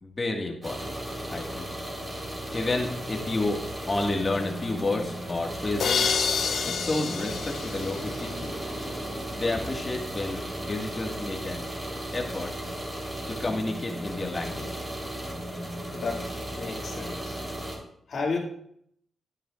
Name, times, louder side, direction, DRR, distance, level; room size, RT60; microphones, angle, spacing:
voice 1, 0.0-0.9 1.3-1.7 2.5-3.6 3.9-6.0 6.6-8.6 9.3-11.7 12.1-12.5 13.3-14.8, left 2 dB, 30° left, 1 dB, 1.9 m, -30 dB
sound 1, 0.6-17.8, right 1 dB, 25° right, 3.7 m, -35 dB
sound 2, 5.2-10.3, right 2 dB, 70° right, 3.4 m, -45 dB
sound 3, 5.8-8.6, left 6 dB, 80° left, 0.9 m, -28 dB
voice 2, 16.5-17.4 18.1-18.4, left 4 dB, 65° left, -2 dB, 2.5 m, -31 dB
11.0 x 11.0 x 2.5 m, 0.69 s
cardioid pair, 90°, 0 cm